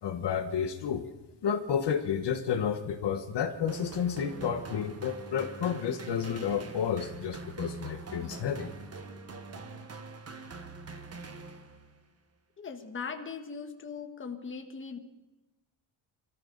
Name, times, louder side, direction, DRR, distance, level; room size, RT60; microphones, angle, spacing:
voice 1, 0.0-1.0 1.4-8.7, left 7 dB, 60° left, 7 dB, 1.3 m, -31 dB
sound 1, 3.7-12.0, right 3 dB, 30° right, 1.4 m, -44 dB
voice 2, 12.6-15.0, left 5 dB, 25° left, 5 dB, 1.5 m, -39 dB
24.5 x 14.0 x 4.0 m, 1.0 s
cardioid pair, 155°, 46 cm